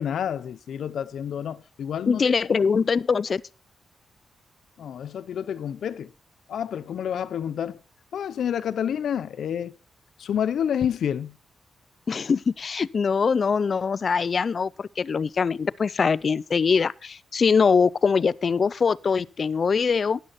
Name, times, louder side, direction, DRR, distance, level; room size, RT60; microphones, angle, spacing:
voice 1, 0.0-2.2 4.8-6.1 6.5-7.8 8.1-9.7 10.2-11.3, left 8 dB, 80° left, 0.8 m, -29 dB
voice 2, 2.1-3.4 12.1-20.2, left 5 dB, 50° left, 0.5 m, -23 dB
12.5 x 10.5 x 4.3 m
cardioid pair, 95°, 0 cm